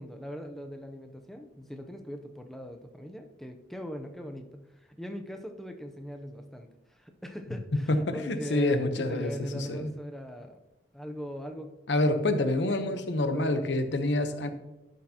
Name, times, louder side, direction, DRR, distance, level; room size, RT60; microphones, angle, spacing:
voice 1, 0.0-10.6 10.9-11.7 12.7-13.6, equal, ahead, 4 dB, 0.6 m, -40 dB
voice 2, 7.7-9.9 11.9-14.5, left 2 dB, 90° left, 9 dB, 0.8 m, -27 dB
11.5 x 6.5 x 2.8 m, 1.0 s
head